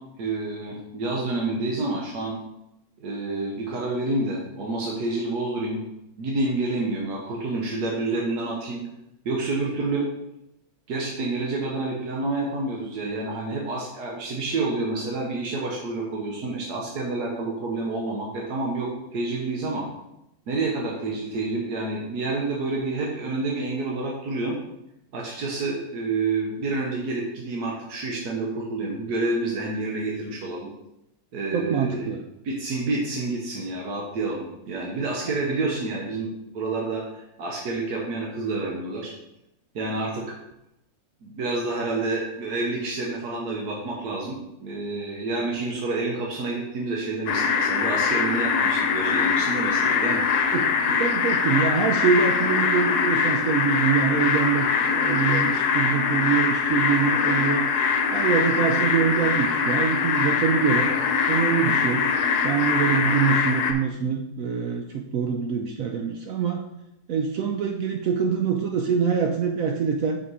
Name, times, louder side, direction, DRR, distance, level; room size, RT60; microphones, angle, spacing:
voice 1, 0.2-2.4 3.0-5.8 6.2-8.8 9.2-10.1 10.9-19.9 20.5-24.6 25.1-30.7 31.3-32.1 32.4-39.1 39.7-40.4 41.2-50.2, right 2 dB, 90° right, -2 dB, 1.6 m, -28 dB
voice 2, 31.5-32.2 50.5-50.7 51.0-57.7 58.1-60.9 61.3-62.0 62.4-66.6 67.1-70.2, right 6 dB, 70° right, 3 dB, 1.0 m, -24 dB
sound 1, 47.3-63.7, left 6 dB, 85° left, 1.3 m, -23 dB
5.9 x 5.1 x 4.7 m, 0.86 s
omnidirectional pair, 1.6 m